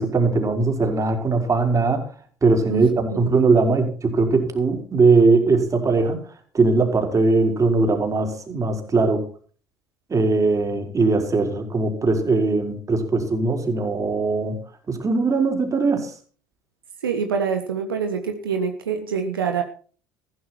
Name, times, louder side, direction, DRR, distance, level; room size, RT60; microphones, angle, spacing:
voice 1, 0.0-2.1 2.4-6.2 6.5-9.3 10.1-14.6 14.9-16.1, right 3 dB, 30° right, 3 dB, 4.5 m, -20 dB
voice 2, 17.0-19.6, right 6 dB, 85° right, 5 dB, 1.5 m, -25 dB
15.0 x 12.5 x 4.5 m, 0.41 s
hypercardioid pair, 65°, 12 cm